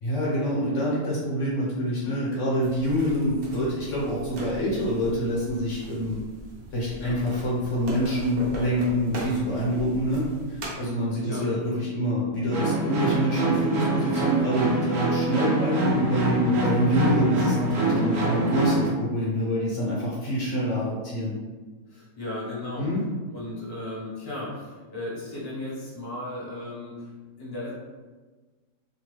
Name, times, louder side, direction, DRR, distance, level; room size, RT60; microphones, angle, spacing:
voice 1, 0.0-6.2 6.7-21.4 22.8-23.0, equal, 60° left, -6 dB, 1.0 m, -26 dB
sound 1, 2.6-10.8, right 1 dB, 55° right, 0.6 m, -39 dB
sound 2, 12.5-18.9, right 2 dB, 80° right, 1.1 m, -25 dB
voice 2, 21.9-22.8 23.3-27.1 27.4-27.7, left 1 dB, 20° left, -7 dB, 0.7 m, -35 dB
2.9 x 2.1 x 3.2 m, 1.3 s
omnidirectional pair, 1.6 m